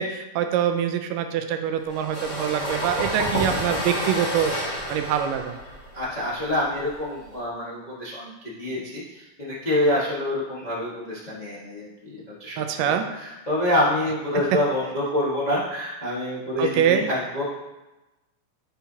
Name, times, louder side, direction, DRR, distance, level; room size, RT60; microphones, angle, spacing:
voice 1, 0.0-5.6 12.6-13.1 16.6-17.1, right 9 dB, 85° right, 7 dB, 2.3 m, -24 dB
sound 1, 1.9-7.4, equal, 35° left, 2.0 m, -30 dB
voice 2, 5.9-17.5, left 1 dB, 75° left, -8 dB, 0.4 m, -27 dB
10.0 x 5.7 x 2.8 m, 1.0 s
omnidirectional pair, 3.8 m